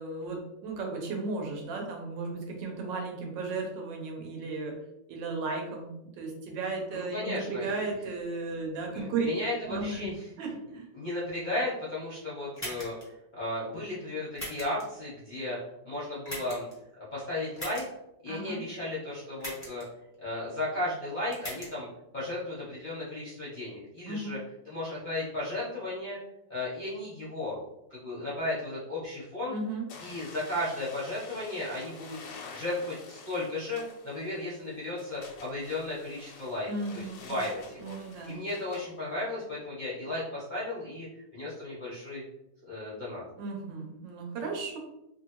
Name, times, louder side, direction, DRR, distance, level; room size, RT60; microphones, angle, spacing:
voice 1, 0.0-4.8 5.1-9.3 9.7-10.9 18.3-18.6 24.1-24.4 29.5-29.9 36.7-37.4 37.8-38.4 43.4-44.8, right 3 dB, 85° right, 1 dB, 1.4 m, -35 dB
voice 2, 6.9-7.7 8.9-10.3 10.9-13.0 13.4-15.6 15.8-16.7 17.1-17.8 18.2-19.8 20.2-21.9 22.1-24.4 24.6-26.2 26.5-27.6 27.9-29.6 30.0-32.2 32.5-36.7 36.9-38.0 38.3-41.1 41.3-42.2 42.7-43.2, left 2 dB, 40° left, -8 dB, 0.6 m, -35 dB
sound 1, 12.6-13.0 14.4-14.8 16.3-16.7 17.6-17.9 19.4-19.8 21.3-21.7, equal, 10° left, 0.9 m, -39 dB
sound 2, 29.9-38.9, left 5 dB, 90° left, 1.3 m, -49 dB
3.0 x 2.6 x 2.9 m, 0.88 s
omnidirectional pair, 1.9 m